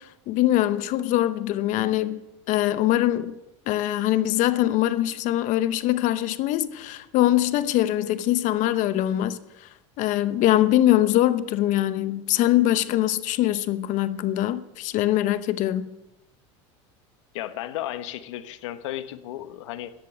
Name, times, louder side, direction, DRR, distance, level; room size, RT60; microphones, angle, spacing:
voice 1, 0.0-2.2 2.5-3.4 3.7-9.7 10.0-15.8, left 14 dB, 55° left, 0.9 m, -23 dB
voice 2, 17.3-19.9, left 13 dB, 80° left, 1.2 m, -34 dB
13.0 x 10.5 x 8.0 m
supercardioid pair, 105°, 15 cm